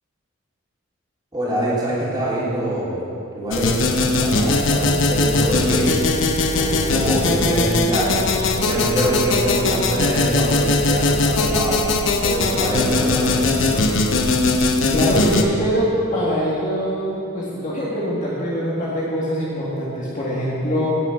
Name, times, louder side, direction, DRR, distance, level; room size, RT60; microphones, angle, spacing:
voice 1, 1.3-2.9 3.3-3.8 4.2-6.0 6.5-11.8 12.2-13.8, right 1 dB, 20° right, -8 dB, 3.4 m, -24 dB
sound 1, 3.5-15.4, left 2 dB, 70° left, 0.9 m, -20 dB
voice 2, 14.9-20.9, equal, 40° left, -7 dB, 1.8 m, -23 dB
17.5 x 6.2 x 5.9 m, 2.7 s
head